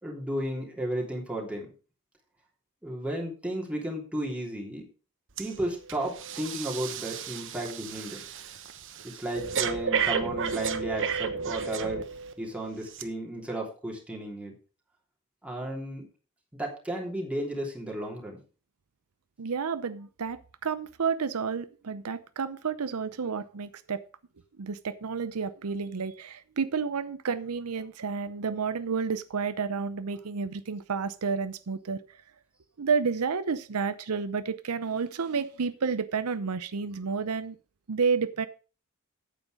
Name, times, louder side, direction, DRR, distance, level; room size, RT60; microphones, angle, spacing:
voice 1, 0.0-1.7 2.8-4.9 5.4-8.2 9.0-12.0 12.4-14.5 15.4-16.1 16.5-18.4, right 1 dB, 5° right, -2 dB, 3.1 m, -34 dB
Breathing, 5.4-5.6 5.9-12.3 12.9-13.0, right 6 dB, 60° right, 1.1 m, -32 dB
voice 2, 19.4-24.0 24.6-32.0 32.8-37.6 37.9-38.5, right 5 dB, 80° right, 13 dB, 0.7 m, -30 dB
9.0 x 8.6 x 5.0 m, 0.35 s
head